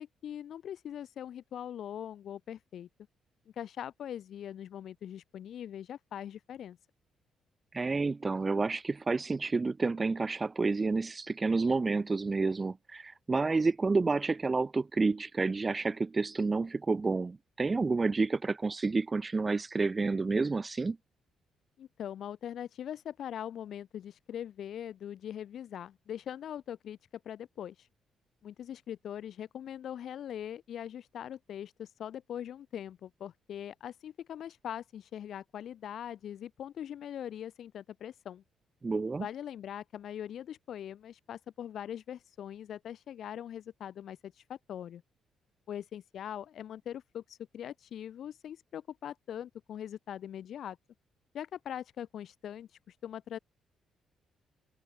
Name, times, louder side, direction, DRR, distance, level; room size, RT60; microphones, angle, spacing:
voice 1, 0.0-2.9 3.6-6.8 21.8-27.0 27.2-27.7 28.4-38.4 39.2-45.0 45.7-50.8 51.3-52.7 53.0-53.4, left 10 dB, 65° left, 6.5 m, -41 dB
voice 2, 7.7-21.0 38.8-39.3, right 3 dB, 25° right, 1.0 m, -29 dB
cardioid pair, 90°, 0 cm